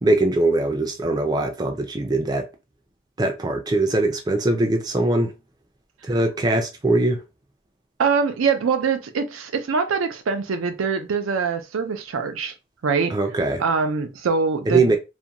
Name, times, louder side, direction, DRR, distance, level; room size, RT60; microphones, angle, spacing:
voice 1, 0.0-2.5 3.2-5.3 6.0-7.2 13.1-13.6 14.7-15.0, right 2 dB, 20° right, 0.4 m, -21 dB
voice 2, 8.0-12.5 12.8-13.2 13.6-15.0, right 5 dB, 90° right, 0.4 m, -23 dB
2.5 x 2.2 x 2.8 m
head